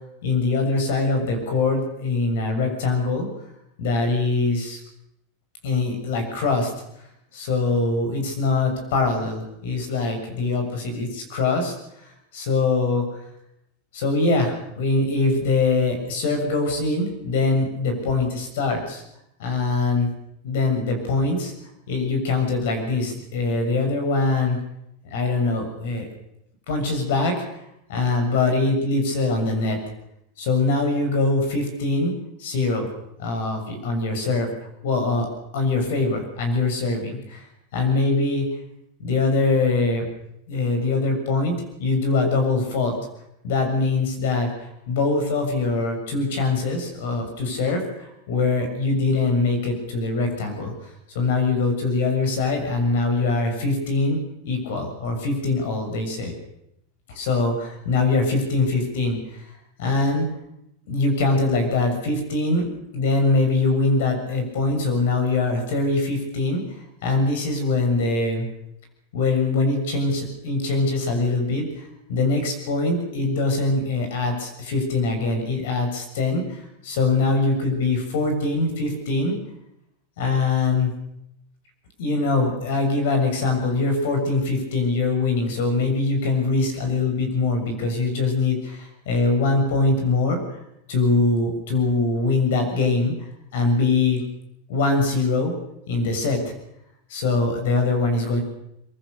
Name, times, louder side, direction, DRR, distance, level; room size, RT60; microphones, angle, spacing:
voice 1, 0.2-3.3 3.8-4.8 5.6-6.7 7.3-11.7 12.3-13.0 13.9-19.0 19.4-20.1 20.4-21.5 21.9-24.6 25.1-26.1 26.7-27.6 27.9-29.8 30.4-32.9 33.2-34.5 34.8-35.3 35.5-37.5 37.7-38.4 39.0-40.1 40.5-41.5 41.8-43.0 43.4-54.2 54.4-56.3 57.1-59.5 59.8-60.3 60.9-62.7 62.9-68.5 69.1-79.4 80.2-80.9 82.0-90.6 90.9-94.2 94.7-95.5 95.9-96.5 97.1-98.4, left 3 dB, 60° left, 5 dB, 6.8 m, -23 dB
24.0 x 22.5 x 6.7 m, 0.81 s
supercardioid pair, 175°, 0 cm